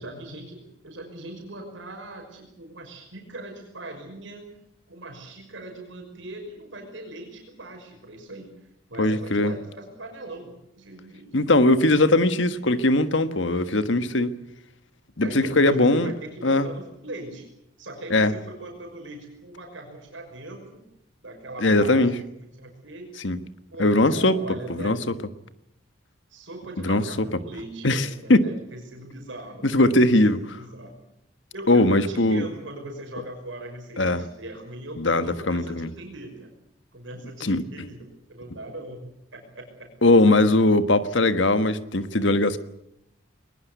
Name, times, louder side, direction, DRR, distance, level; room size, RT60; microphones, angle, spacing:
voice 1, 0.0-4.5 4.9-8.5 8.9-11.9 15.2-17.5 17.8-20.8 21.2-23.1 23.7-25.2 26.3-31.0 31.5-36.5 36.9-39.9 40.8-40.9, right 1 dB, 80° right, 5.8 m, -40 dB
voice 2, 9.0-9.5 11.3-14.3 15.2-16.1 16.4-16.7 18.1-18.3 21.6-22.1 23.2-23.4 23.8-24.4 24.7-25.0 26.8-27.0 27.8-28.5 29.6-30.4 31.7-32.4 34.0-34.2 35.0-35.9 37.4-37.6 40.0-42.6, left 2 dB, 75° left, 1.5 m, -20 dB
21.5 x 20.5 x 8.2 m
head